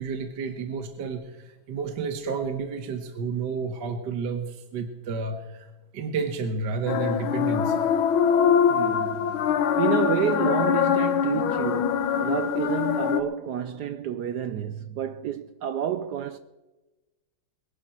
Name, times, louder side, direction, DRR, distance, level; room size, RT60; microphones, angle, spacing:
voice 1, 0.0-7.9, right 5 dB, 60° right, 1.6 m, -31 dB
sound 1, 6.9-13.2, left 8 dB, 70° left, 1.7 m, -23 dB
voice 2, 8.7-16.4, right 10 dB, 80° right, 0.9 m, -30 dB
21.5 x 11.0 x 4.4 m
omnidirectional pair, 2.4 m